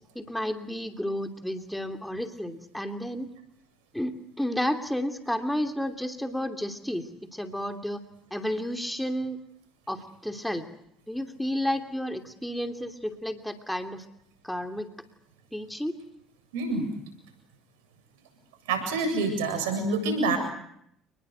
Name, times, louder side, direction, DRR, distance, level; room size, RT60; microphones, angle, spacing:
voice 1, 0.1-3.3 3.9-8.0 8.3-9.4 9.9-10.6 11.1-14.0 14.4-14.9 15.5-16.0, equal, 5° left, 6 dB, 2.9 m, -31 dB
voice 2, 16.5-16.9 18.7-20.4, right 3 dB, 80° right, 7 dB, 7.7 m, -26 dB
28.5 x 21.0 x 8.0 m, 0.72 s
hypercardioid pair, 65°, 0 cm